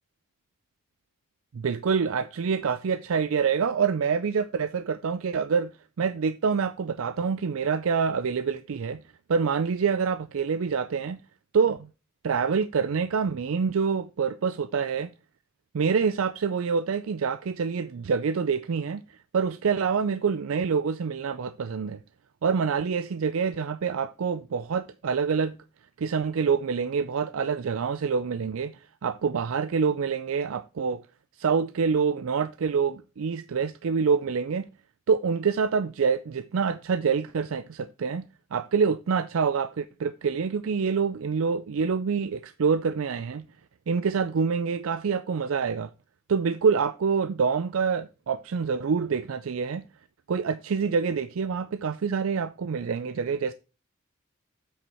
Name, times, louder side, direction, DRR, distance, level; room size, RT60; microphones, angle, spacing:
voice 1, 1.5-5.7 6.0-9.0 9.3-11.2 11.5-11.9 12.2-15.1 15.7-19.0 19.3-22.0 22.4-25.5 26.0-28.7 29.0-31.0 31.4-34.7 35.1-38.2 38.5-43.4 43.9-45.9 46.3-49.8 50.3-53.5, right 6 dB, 75° right, 0.4 m, -26 dB
8.0 x 6.2 x 4.4 m
head